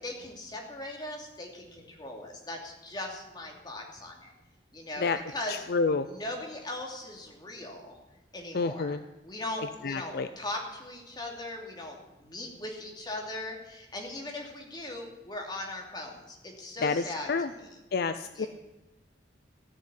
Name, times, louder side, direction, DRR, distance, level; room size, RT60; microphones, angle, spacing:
voice 1, 0.0-4.3 4.7-5.6 6.1-8.0 8.3-8.9 9.2-17.8 18.3-18.5, left 1 dB, 25° left, 0 dB, 2.7 m, -39 dB
voice 2, 5.5-6.1 8.5-9.0 9.8-10.3 16.8-17.5 17.9-18.5, left 4 dB, 60° left, 11 dB, 0.5 m, -29 dB
15.5 x 6.6 x 9.8 m, 1.1 s
head